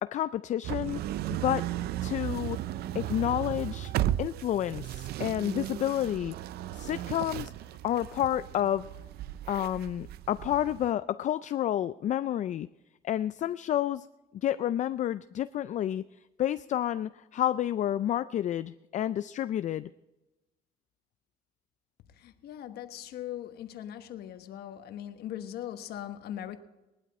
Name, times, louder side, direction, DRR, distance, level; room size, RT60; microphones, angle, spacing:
voice 1, 0.0-1.0 1.3-1.7 2.0-2.6 2.9-3.9 4.2-6.3 6.7-7.5 7.8-8.9 9.5-12.7 13.0-14.1 14.3-16.0 16.4-19.9, left 11 dB, 45° left, 0.4 m, -30 dB
sound 1, 0.6-10.9, right 13 dB, 70° right, 0.5 m, -35 dB
voice 2, 22.2-26.6, left 11 dB, 70° left, 1.2 m, -40 dB
19.0 x 12.0 x 4.2 m
cardioid pair, 110°, 17 cm